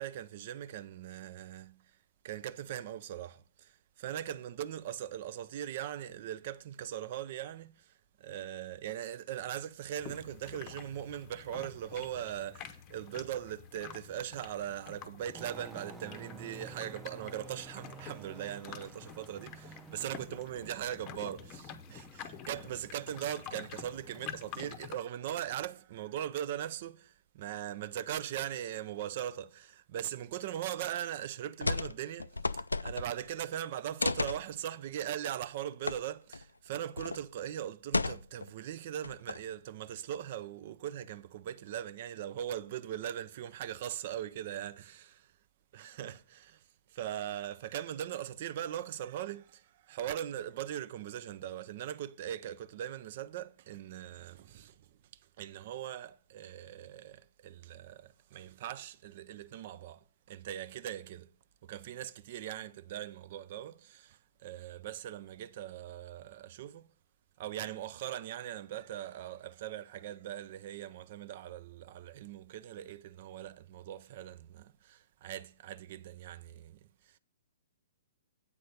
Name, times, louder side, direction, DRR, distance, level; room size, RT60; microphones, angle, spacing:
voice 1, 0.0-1.8 2.2-45.2 45.7-46.6 46.9-54.8 55.4-61.3 61.6-66.8 67.4-76.9 77.1-77.2, right 11 dB, 45° right, 0.4 m, -40 dB
sound 1, 10.0-25.0, left 8 dB, 30° left, 0.7 m, -48 dB
sound 2, 15.3-24.7, right 2 dB, 5° right, 0.6 m, -53 dB
sound 3, 31.6-33.3 34.0-34.4 35.9-36.0 36.3-36.4 37.0-37.2 37.9-38.5 39.0-39.5, left 3 dB, 80° left, 0.3 m, -33 dB
8.4 x 4.3 x 6.5 m
figure-of-eight pair, 120°, 0 cm